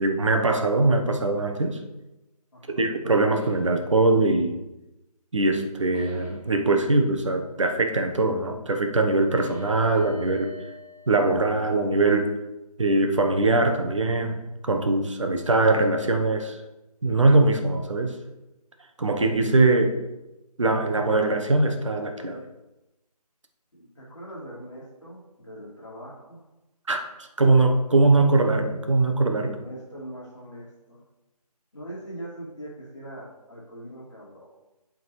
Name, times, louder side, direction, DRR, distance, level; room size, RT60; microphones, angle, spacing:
voice 1, 0.0-1.8 2.8-4.6 5.3-10.5 11.1-12.4 12.8-16.6 17.0-18.2 19.0-20.0 20.6-22.5 26.9-27.0 27.4-29.6, right 2 dB, 50° right, 5 dB, 0.9 m, -22 dB
voice 2, 2.5-2.8 23.7-26.4 29.4-31.0 31.7-34.5, right 1 dB, 50° left, -6 dB, 2.4 m, -41 dB
sound 1, 3.3-3.7 5.9-6.5 9.3-11.8, equal, 15° right, 1.5 m, -45 dB
11.0 x 3.8 x 3.2 m, 0.99 s
figure-of-eight pair, 165°, 20 cm